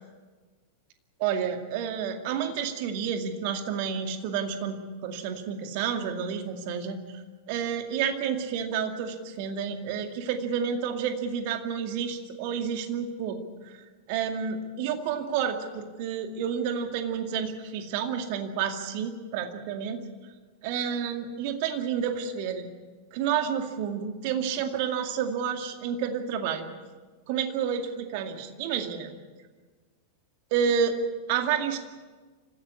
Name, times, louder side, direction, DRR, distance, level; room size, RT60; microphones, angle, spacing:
voice 1, 1.2-7.2 7.5-13.4 13.6-13.7 14.1-20.0 20.6-22.7 23.1-26.6 27.3-29.1 30.5-31.0 31.3-31.8, right 7 dB, 45° right, 6 dB, 2.2 m, -30 dB
25.5 x 15.5 x 8.5 m, 1.4 s
figure-of-eight pair, 90°, 0 cm